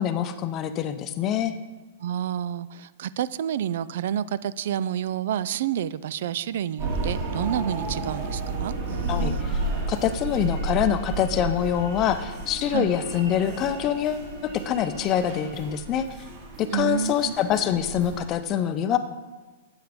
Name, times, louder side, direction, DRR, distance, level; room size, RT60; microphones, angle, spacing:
voice 1, 0.0-1.5 9.1-16.1 16.6-19.0, left 9 dB, 30° left, 10 dB, 0.6 m, -25 dB
voice 2, 2.0-9.4 12.7-12.9 16.7-17.3, right 10 dB, 65° right, 18 dB, 0.3 m, -29 dB
sound 1, 6.8-18.3, right 3 dB, 40° right, 2.1 m, -32 dB
8.1 x 8.0 x 5.0 m, 1.3 s
hypercardioid pair, 150°, 0 cm